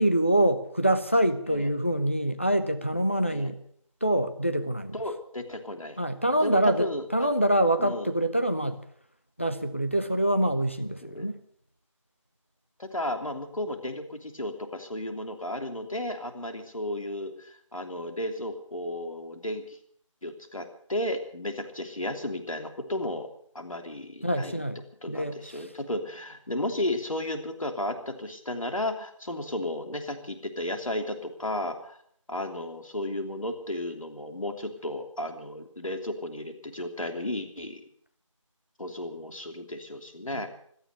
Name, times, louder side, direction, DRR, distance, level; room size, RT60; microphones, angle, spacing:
voice 1, 0.0-3.6 4.0-5.0 6.0-8.8 9.4-11.4 24.2-24.8 25.1-25.7 40.3-40.4, right 1 dB, 25° left, 9 dB, 0.7 m, -25 dB
voice 2, 4.9-6.0 6.4-7.3 7.8-8.1 11.0-11.3 12.8-19.8 20.2-23.3 23.5-24.6 25.0-32.0 32.3-37.8 38.8-40.5, left 1 dB, 75° left, 5 dB, 3.1 m, -34 dB
16.5 x 13.0 x 6.8 m, 0.64 s
figure-of-eight pair, 180°, 17 cm